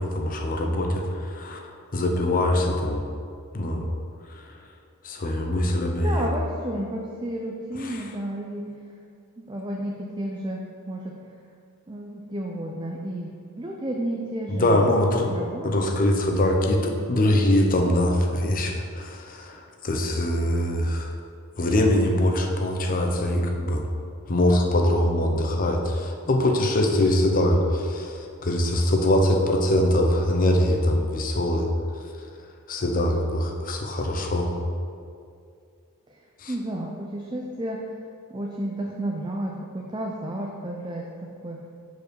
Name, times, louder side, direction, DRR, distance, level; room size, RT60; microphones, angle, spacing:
voice 1, 0.0-1.6 1.9-3.0 3.5-3.9 4.3-4.4 5.0-6.2 7.8-8.0 14.5-15.3 15.6-21.2 21.6-23.9 24.3-31.7 32.0-32.1 32.7-34.5 36.4-36.5, left 1 dB, 40° left, 2 dB, 0.7 m, -23 dB
voice 2, 6.0-8.7 9.4-11.1 11.9-14.9 15.3-15.9 36.1-36.2 36.5-37.9 38.3-41.6, right 1 dB, 20° right, -1 dB, 0.5 m, -32 dB
5.1 x 4.7 x 6.2 m, 2.3 s
head